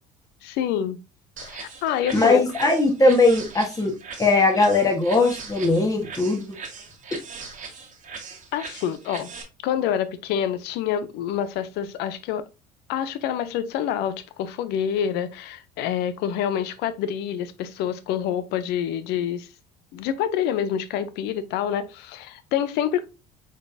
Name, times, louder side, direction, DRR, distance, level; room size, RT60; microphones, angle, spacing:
voice 1, 0.4-1.0 1.4-2.4 8.5-9.3 9.6-12.4 12.9-19.5 19.9-23.0, left 9 dB, 65° left, 0.7 m, -27 dB
sound 1, 1.4-9.4, right 5 dB, 45° right, 1.5 m, -40 dB
voice 2, 2.1-3.9 4.2-6.5, left 2 dB, 20° left, 1.4 m, -19 dB
4.7 x 4.0 x 2.7 m
hypercardioid pair, 75°, 18 cm